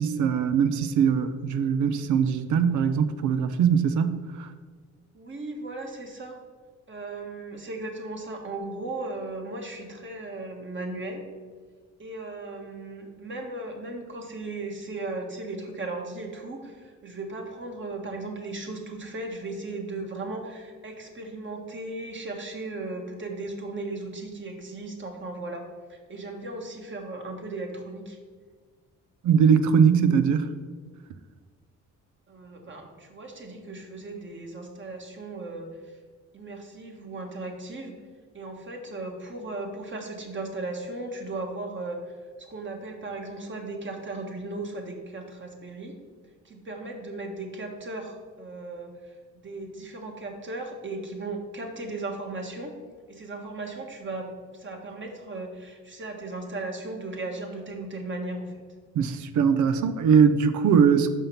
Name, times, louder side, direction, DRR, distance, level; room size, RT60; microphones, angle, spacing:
voice 1, 0.0-4.5 29.2-30.5 58.9-61.1, right 7 dB, 75° right, 11 dB, 0.6 m, -21 dB
voice 2, 5.1-6.4 6.9-11.2 12.0-25.6 25.9-28.2 32.3-36.0 36.3-37.9 38.3-45.9 46.4-49.1 49.4-52.7 53.1-58.6, right 2 dB, 40° right, 2 dB, 1.5 m, -36 dB
5.7 x 5.4 x 5.5 m, 1.5 s
cardioid pair, 90°, 30 cm